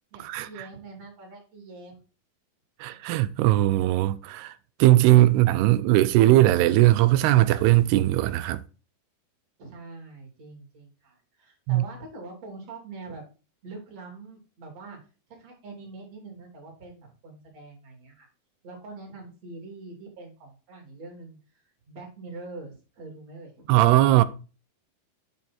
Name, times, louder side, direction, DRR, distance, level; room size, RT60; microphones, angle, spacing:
voice 1, 0.1-2.0 9.6-13.2 13.6-15.0 15.3-18.3 18.6-23.7, right 3 dB, 40° right, 3.6 m, -44 dB
voice 2, 2.8-4.5 4.8-8.6 11.7-11.8 23.7-24.2, right 15 dB, 85° right, 2.6 m, -19 dB
9.1 x 5.6 x 4.3 m
omnidirectional pair, 4.7 m